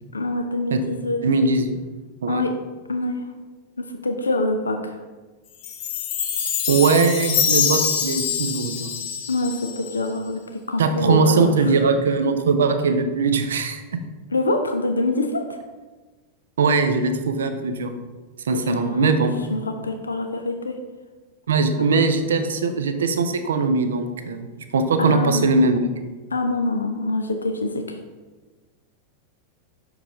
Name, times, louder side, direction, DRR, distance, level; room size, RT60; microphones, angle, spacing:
voice 1, 0.1-1.2 2.3-2.5 2.9-3.3 3.8-5.0 9.3-11.5 14.3-15.5 18.5-20.8 25.0-25.5 26.3-28.0, left 2 dB, 75° left, 5 dB, 0.4 m, -25 dB
voice 2, 1.2-1.8 2.2-2.4 6.7-8.9 10.8-14.0 16.6-17.9 18.4-19.3 21.5-25.8, right 4 dB, 65° right, 8 dB, 0.5 m, -20 dB
Chime, 5.6-10.1, left 8 dB, 45° left, 0.7 m, -25 dB
6.0 x 4.7 x 3.6 m, 1.3 s
figure-of-eight pair, 90°, 0 cm